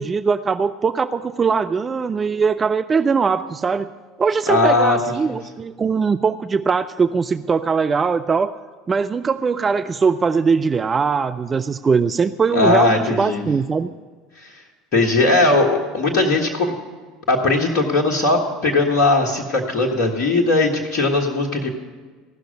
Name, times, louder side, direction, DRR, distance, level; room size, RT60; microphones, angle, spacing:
voice 1, 0.0-3.9 4.2-8.5 8.9-13.9, right 5 dB, 25° right, 11 dB, 0.4 m, -20 dB
voice 2, 4.5-5.0 12.5-13.4 14.4-14.5 14.9-16.7 17.3-21.7, left 2 dB, 50° left, -1 dB, 1.6 m, -18 dB
16.0 x 6.3 x 9.4 m, 1.4 s
figure-of-eight pair, 70°, 0 cm